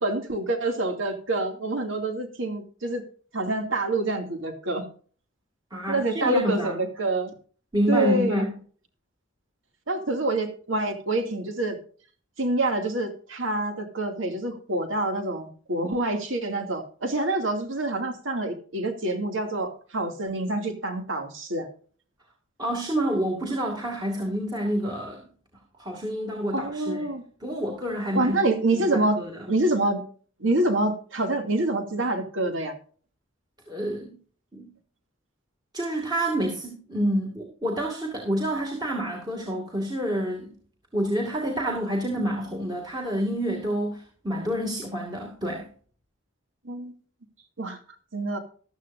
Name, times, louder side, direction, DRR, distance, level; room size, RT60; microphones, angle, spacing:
voice 1, 0.0-3.0 3.3-4.8 5.9-7.3 7.9-8.5 9.9-11.8 12.4-21.7 26.5-27.2 28.1-29.2 29.5-30.0 30.4-32.8 46.6-46.9 47.6-47.8 48.1-48.4, right 2 dB, 70° right, 5 dB, 2.5 m, -26 dB
voice 2, 5.7-6.7 7.7-8.5 22.6-25.3 25.8-27.0 27.4-28.4 28.8-29.4 33.7-34.2 34.5-34.7 35.7-40.5 40.9-45.7, equal, 20° right, -1 dB, 2.3 m, -28 dB
15.0 x 12.0 x 2.6 m, 0.43 s
head